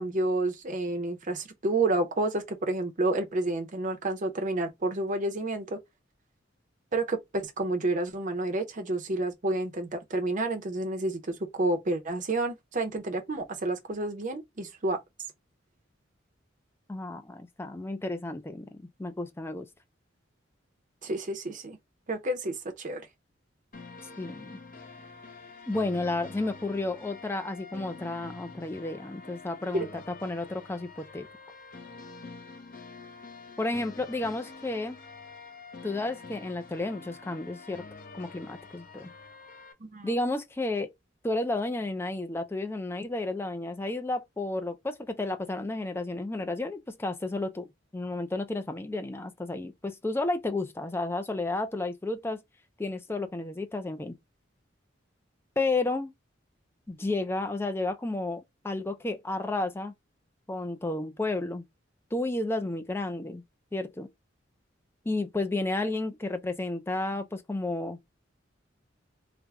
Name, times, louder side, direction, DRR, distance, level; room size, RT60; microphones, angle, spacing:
voice 1, 0.0-5.8 6.9-15.0 21.0-21.8 22.1-23.0 29.7-29.9 39.8-40.1, right 2 dB, 40° right, 0.6 m, -30 dB
voice 2, 16.9-19.7 24.2-24.6 25.7-29.9 30.2-31.3 33.6-35.0 35.8-37.8 38.1-39.1 40.0-40.9 41.2-52.4 52.8-54.2 55.6-56.1 56.9-59.9 60.5-61.6 62.1-63.4 63.7-64.1 65.1-68.2, left 2 dB, 10° left, 0.4 m, -32 dB
sound 1, 23.7-39.7, left 4 dB, 45° left, 0.7 m, -47 dB
3.3 x 2.1 x 3.5 m
head